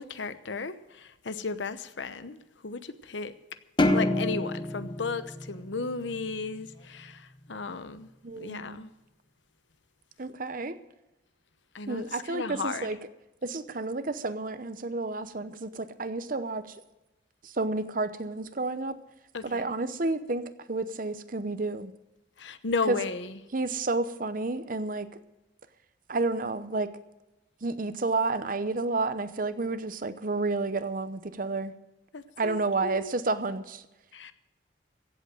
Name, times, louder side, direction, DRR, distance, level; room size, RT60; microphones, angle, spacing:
voice 1, 0.0-3.3 3.9-8.1 8.4-8.9 11.7-12.9 19.3-19.6 22.4-23.4 32.1-33.1 34.1-34.3, left 4 dB, 75° left, 0.9 m, -35 dB
sound 1, 3.8-6.3, left 1 dB, 25° left, 1.0 m, -27 dB
voice 2, 8.2-8.8 10.2-10.8 11.9-13.0 13.4-16.8 17.4-19.0 19.4-21.9 22.9-23.0 23.5-25.1 26.1-26.9 27.6-31.7 32.4-33.8, right 3 dB, 45° right, 0.8 m, -30 dB
16.0 x 8.1 x 7.6 m
head